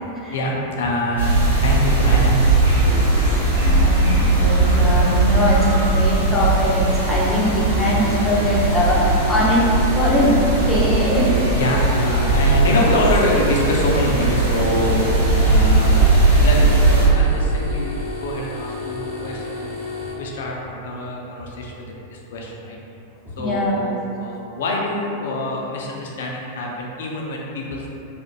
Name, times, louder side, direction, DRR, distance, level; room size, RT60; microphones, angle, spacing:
voice 1, 0.3-2.7 4.8-5.0 7.9-8.1 11.5-19.7 20.2-22.8 23.4-27.9, left 1 dB, 60° left, -1 dB, 0.4 m, -25 dB
sound 1, 1.2-17.1, right 2 dB, 70° right, 0.7 m, -18 dB
voice 2, 3.6-6.8 7.1-9.6 10.0-10.4 10.7-11.3 23.4-23.8, left 1 dB, 10° left, -8 dB, 0.5 m, -21 dB
sound 2, 6.8-20.1, left 2 dB, 30° right, 0.8 m, -33 dB
2.3 x 2.0 x 3.0 m, 2.8 s
figure-of-eight pair, 90°, 0 cm